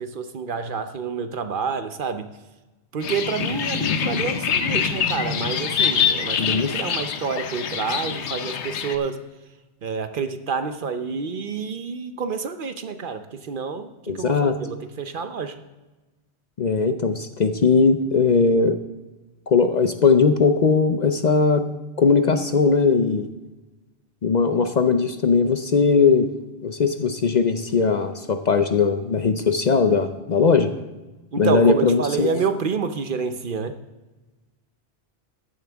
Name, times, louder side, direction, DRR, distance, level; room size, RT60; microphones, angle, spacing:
voice 1, 0.0-2.3 2.9-9.2 9.8-15.6 31.3-33.8, right 5 dB, 55° right, 9 dB, 0.8 m, -28 dB
sound 1, 3.0-9.0, left 7 dB, 90° left, 1.1 m, -25 dB
voice 2, 6.4-6.7 14.1-14.6 16.6-18.8 19.5-21.7 22.0-23.3 24.2-26.3 26.6-30.7 31.4-32.3, left 4 dB, 50° left, 8 dB, 0.6 m, -19 dB
14.0 x 10.5 x 3.4 m, 1.1 s
omnidirectional pair, 1.1 m